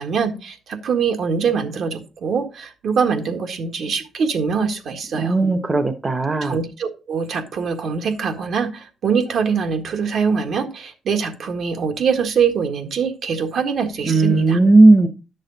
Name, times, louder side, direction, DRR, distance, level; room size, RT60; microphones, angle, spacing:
voice 1, 0.0-5.4 6.4-14.6, right 6 dB, 65° right, 6 dB, 1.6 m, -23 dB
voice 2, 5.2-6.6 14.1-15.1, right 2 dB, 25° right, 9 dB, 1.0 m, -15 dB
10.5 x 6.5 x 4.0 m, 0.33 s
cardioid pair, 90°, 0 cm